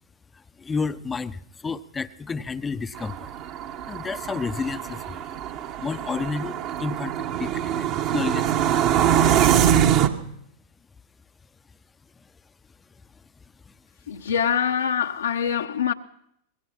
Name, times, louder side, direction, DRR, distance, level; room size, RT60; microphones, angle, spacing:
voice 1, 0.3-3.3 3.9-5.3 5.8-8.8 12.2-12.3 13.7-13.8, left 4 dB, 15° left, 0.9 m, -31 dB
sound 1, 3.0-10.1, right 10 dB, 40° right, 1.8 m, -23 dB
voice 2, 14.1-15.9, left 8 dB, 70° left, 1.2 m, -24 dB
25.5 x 21.0 x 5.9 m
figure-of-eight pair, 90°, 0 cm